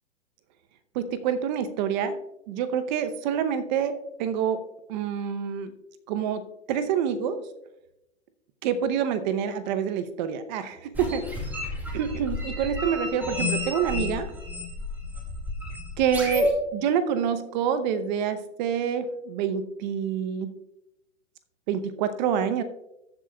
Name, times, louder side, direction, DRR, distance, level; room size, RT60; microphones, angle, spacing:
voice 1, 0.9-2.2 2.5-4.6 4.9-5.7 6.1-6.4 6.7-7.4 8.6-11.3 11.9-14.3 16.0-20.6 21.7-22.6, right 8 dB, 40° right, 10 dB, 0.8 m, -27 dB
sound 1, 10.9-16.5, left 2 dB, 5° right, 2.1 m, -31 dB
14.5 x 7.6 x 2.3 m, 0.86 s
hypercardioid pair, 135°, 35 cm